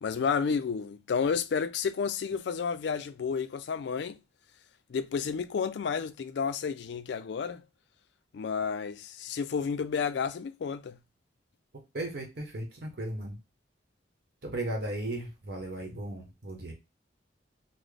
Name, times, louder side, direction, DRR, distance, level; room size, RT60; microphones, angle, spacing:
voice 1, 0.0-4.2 4.9-7.6 8.3-11.0, left 6 dB, 65° left, 0.3 m, -31 dB
voice 2, 11.9-13.4 14.4-16.7, right 1 dB, 55° right, 0.9 m, -36 dB
3.9 x 2.0 x 3.2 m
head